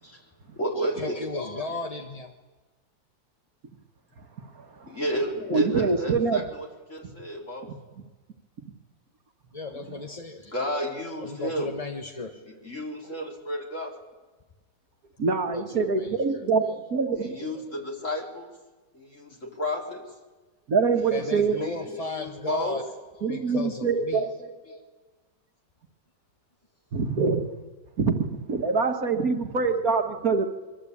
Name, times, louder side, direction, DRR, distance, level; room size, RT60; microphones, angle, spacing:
voice 1, 0.0-1.8 4.9-7.7 10.3-11.7 12.1-12.2 12.5-13.9 15.7-15.8 16.2-18.5 18.9-20.1 20.9-22.8 23.3-23.4 24.0-24.8, equal, 40° left, 0 dB, 4.6 m, -33 dB
voice 2, 1.0-2.3 9.5-10.5 11.2-12.3 15.5-16.5 21.1-22.8 23.3-24.2, left 3 dB, 25° left, 4 dB, 1.0 m, -35 dB
voice 3, 5.5-6.4 15.2-17.3 20.7-21.6 23.2-24.3 26.9-27.5 28.0-30.5, right 4 dB, 55° right, 5 dB, 1.9 m, -24 dB
25.5 x 24.0 x 8.6 m, 1.2 s
omnidirectional pair, 2.0 m